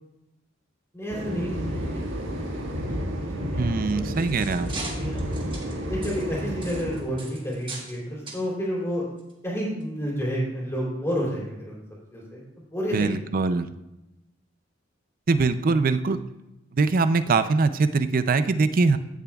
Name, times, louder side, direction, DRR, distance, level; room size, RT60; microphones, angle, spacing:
voice 1, 0.9-1.8 2.2-2.3 2.5-2.9 3.4-4.1 4.9-5.4 5.8-9.1 9.4-11.8 12.1-13.4, equal, 15° left, -4 dB, 3.2 m, -30 dB
sound 1, 1.1-7.0, equal, 75° right, 1.6 m, -31 dB
voice 2, 3.6-4.7 12.9-13.7 15.3-16.2 16.7-19.0, right 4 dB, 45° right, 12 dB, 0.4 m, -22 dB
sound 2, 3.9-8.0 8.3-8.4 9.2-9.3 9.8-9.9, right 2 dB, 25° right, 1.5 m, -40 dB
16.0 x 7.0 x 2.3 m, 0.94 s
head